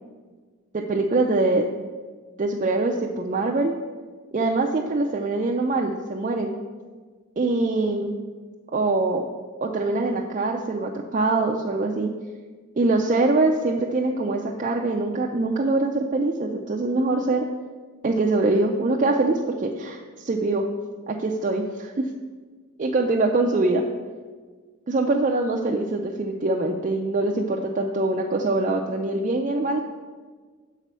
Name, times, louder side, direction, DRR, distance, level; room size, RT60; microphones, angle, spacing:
voice 1, 0.7-1.7 2.4-3.7 4.3-6.5 7.4-8.2 8.7-9.2 9.6-12.1 12.7-17.5 18.0-20.6 21.1-22.1 22.8-23.8 24.9-29.8, right 2 dB, 35° right, 1 dB, 0.4 m, -23 dB
6.7 x 4.1 x 6.0 m, 1.4 s
head